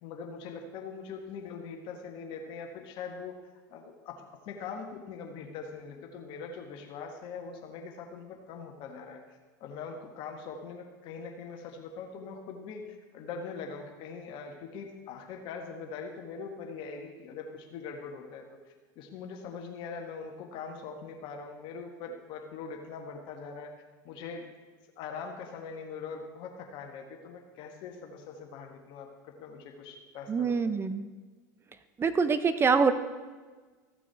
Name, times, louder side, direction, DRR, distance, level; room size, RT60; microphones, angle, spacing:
voice 1, 0.0-24.5 25.0-30.8, left 5 dB, 55° left, 3 dB, 1.5 m, -42 dB
voice 2, 30.3-31.0 32.0-32.9, right 5 dB, 25° right, 11 dB, 0.9 m, -25 dB
15.0 x 6.1 x 4.6 m, 1.4 s
hypercardioid pair, 95°, 10 cm